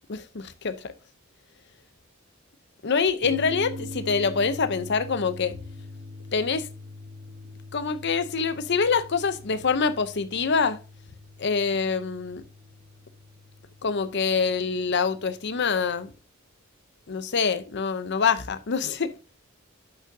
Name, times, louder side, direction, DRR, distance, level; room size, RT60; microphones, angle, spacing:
voice 1, 0.1-0.9 2.8-5.6 6.3-6.7 7.7-10.8 11.4-12.4 13.8-16.1 17.1-19.1, left 5 dB, 55° left, 0.7 m, -25 dB
sound 1, 3.2-16.1, left 2 dB, 50° right, 3.0 m, -43 dB
10.5 x 6.4 x 2.7 m
head